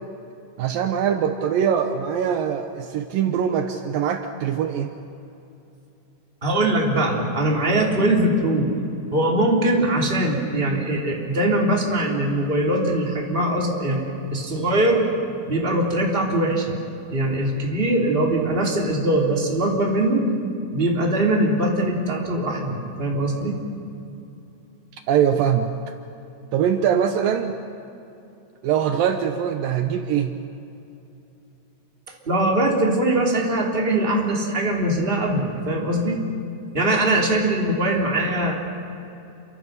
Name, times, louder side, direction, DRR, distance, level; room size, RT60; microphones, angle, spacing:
voice 1, 0.6-4.9 25.1-25.7 26.5-27.5 28.6-30.3, right 8 dB, 75° right, 6 dB, 2.5 m, -22 dB
voice 2, 6.4-8.7 9.1-14.0 14.3-15.0 15.5-16.8 17.1-20.2 20.7-23.6 32.2-36.2 36.7-38.5, right 1 dB, 15° right, -1 dB, 2.8 m, -21 dB
28.5 x 24.5 x 6.7 m, 2.8 s
omnidirectional pair, 4.3 m